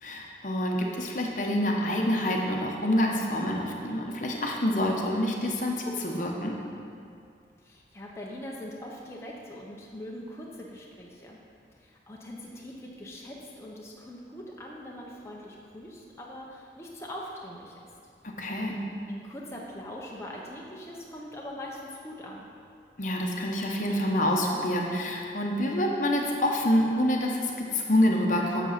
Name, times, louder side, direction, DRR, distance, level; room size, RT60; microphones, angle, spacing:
voice 1, 0.0-6.6 18.4-18.8 23.0-28.7, left 1 dB, 45° left, 0 dB, 0.9 m, -27 dB
voice 2, 7.6-11.4 11.8-17.8 19.1-22.5, left 1 dB, 15° left, -3 dB, 0.8 m, -42 dB
7.7 x 6.9 x 5.7 m, 2.4 s
head